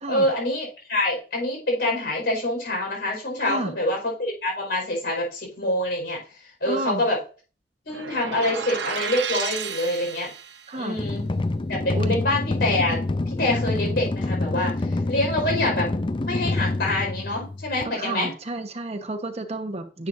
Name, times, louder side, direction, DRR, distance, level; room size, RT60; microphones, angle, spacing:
voice 1, 0.1-6.2 6.6-7.2 7.8-10.3 10.7-11.3 11.7-13.0 13.3-15.9 16.2-18.3, left 1 dB, 65° left, 1 dB, 4.8 m, -26 dB
voice 2, 6.6-7.0 10.7-11.0 11.9-12.2 17.8-20.1, right 2 dB, 40° right, 6 dB, 1.1 m, -30 dB
sound 1, 7.9-10.7, right 7 dB, 80° right, 1.0 m, -32 dB
sound 2, 11.0-17.8, left 2 dB, 30° left, 0.5 m, -27 dB
10.5 x 8.5 x 2.6 m, 0.37 s
head